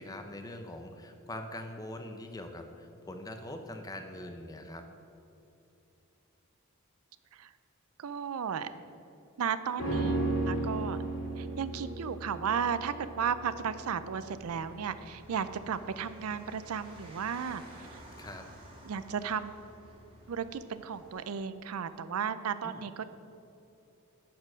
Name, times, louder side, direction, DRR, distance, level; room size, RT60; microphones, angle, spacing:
voice 1, 0.0-4.8 18.2-18.5 22.6-22.8, left 1 dB, 15° left, 5 dB, 0.7 m, -43 dB
voice 2, 8.0-8.7 9.4-11.0 11.4-18.0 18.8-19.5 20.3-23.0, right 7 dB, 80° right, 13 dB, 0.4 m, -34 dB
sound 1, 9.8-19.2 19.5-19.6, right 2 dB, 70° left, 2.2 m, -36 dB
sound 2, 14.4-21.3, right 1 dB, 25° right, 1.5 m, -55 dB
11.0 x 4.5 x 6.2 m, 2.8 s
head